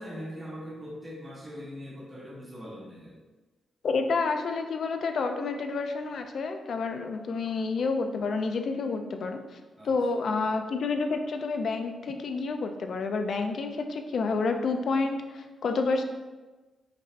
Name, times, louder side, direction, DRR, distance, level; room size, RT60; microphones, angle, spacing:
voice 1, 0.0-3.2 9.8-9.9, equal, 15° right, -7 dB, 1.0 m, -41 dB
voice 2, 3.8-9.4 9.8-16.0, left 4 dB, 50° left, 6 dB, 0.4 m, -29 dB
5.3 x 3.9 x 2.5 m, 1.2 s
wide cardioid pair, 160°, 0 cm